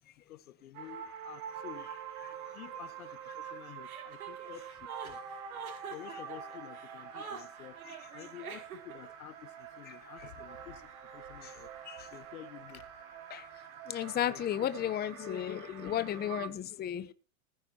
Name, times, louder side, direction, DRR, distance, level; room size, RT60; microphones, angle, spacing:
voice 1, 0.3-1.9 2.5-5.2 5.9-11.7 12.0-12.9 14.3-14.7 15.6-16.7, left 12 dB, 80° left, 2.1 m, -50 dB
sound 1, 0.7-16.5, right 8 dB, 50° right, 6.3 m, -46 dB
Chuckle chortle, 3.8-9.1, right 7 dB, 80° right, 5.7 m, -46 dB
voice 2, 13.9-17.1, left 11 dB, 20° left, 1.0 m, -34 dB
20.5 x 9.9 x 3.0 m
hypercardioid pair, 115°, 43 cm